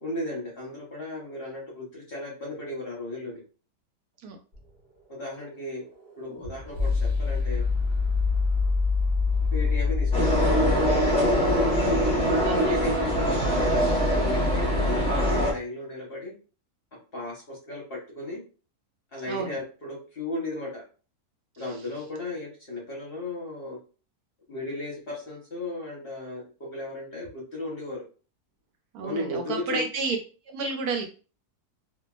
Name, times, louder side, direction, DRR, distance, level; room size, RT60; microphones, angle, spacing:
voice 1, 0.0-3.4 5.1-5.9 6.2-7.6 9.5-11.6 12.4-16.3 16.9-18.4 19.1-20.8 21.6-23.8 24.5-28.0 29.0-29.8, left 2 dB, 50° left, -3 dB, 0.8 m, -35 dB
sound 1, 4.5-12.6, left 4 dB, 45° right, 1.1 m, -27 dB
sound 2, 10.1-15.5, equal, 5° left, 0.5 m, -23 dB
voice 2, 12.4-12.9 19.3-19.6 21.6-21.8 28.9-30.2 30.5-31.1, right 4 dB, 75° right, 3 dB, 1.0 m, -31 dB
2.7 x 2.3 x 2.3 m, 0.36 s
omnidirectional pair, 1.7 m